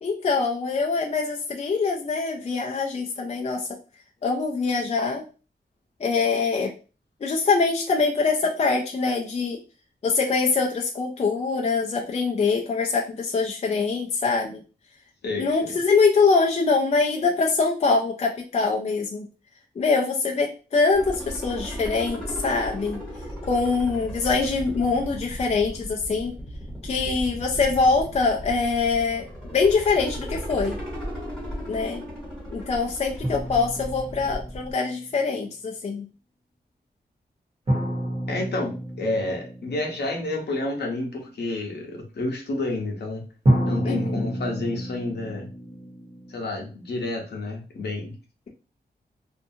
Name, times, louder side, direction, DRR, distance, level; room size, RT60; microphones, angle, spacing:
voice 1, 0.0-3.7 4.2-5.2 6.0-6.7 7.2-9.6 10.0-14.6 15.4-19.3 19.8-23.0 23.5-26.4 26.8-30.8 31.7-32.0 32.5-36.1 43.8-44.3, left 4 dB, 40° left, 0 dB, 0.4 m, -24 dB
voice 2, 15.2-15.8 38.3-43.2 43.7-45.5 46.3-48.1, left 2 dB, 80° left, 1 dB, 0.8 m, -30 dB
sound 1, 20.9-34.7, equal, 5° left, 1.3 m, -36 dB
sound 2, 33.2-35.0 37.7-40.5 43.5-47.3, right 1 dB, 35° right, 1.0 m, -29 dB
2.6 x 2.4 x 2.7 m, 0.34 s
wide cardioid pair, 165°, 17 cm